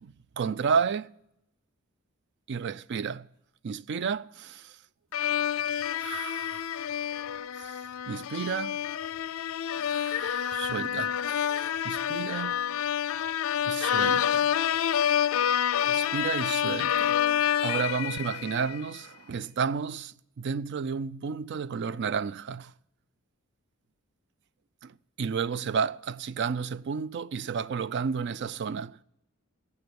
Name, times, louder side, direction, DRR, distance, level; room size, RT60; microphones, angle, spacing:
voice 1, 0.0-1.1 2.5-3.3 3.6-4.8 6.0-7.1 7.6-8.8 9.7-12.6 13.6-14.5 15.9-17.2 17.6-22.7 24.8-29.0, right 6 dB, 55° right, 0.4 m, -32 dB
sound 1, 5.1-18.8, left 9 dB, 70° left, 0.4 m, -28 dB
17.0 x 6.9 x 6.9 m
head